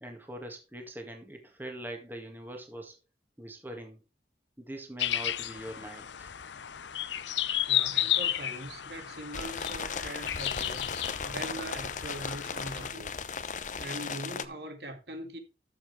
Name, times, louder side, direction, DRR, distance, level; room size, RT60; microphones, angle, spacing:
voice 1, 0.0-3.0 3.4-4.0 4.6-6.3, right 1 dB, 10° right, 1.9 m, -42 dB
sound 1, 5.0-12.9, left 12 dB, 85° left, 0.6 m, -33 dB
voice 2, 7.7-11.0 11.2-13.1 13.8-15.4, right 1 dB, 65° right, 2.3 m, -41 dB
sound 2, 9.3-14.5, left 5 dB, 45° left, 0.8 m, -37 dB
13.5 x 7.2 x 3.4 m
head